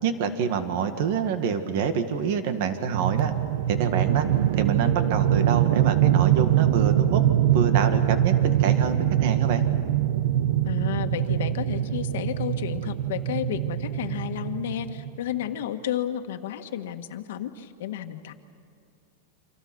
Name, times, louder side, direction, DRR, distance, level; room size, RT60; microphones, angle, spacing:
voice 1, 0.0-3.3 3.7-4.3 4.5-7.2 7.5-9.6, right 6 dB, 45° right, 8 dB, 1.9 m, -26 dB
sound 1, 2.9-15.2, right 12 dB, 65° right, 0.8 m, -23 dB
voice 2, 10.6-18.3, left 10 dB, 65° left, 7 dB, 1.6 m, -32 dB
29.0 x 26.5 x 6.3 m, 2.3 s
supercardioid pair, 180°, 0 cm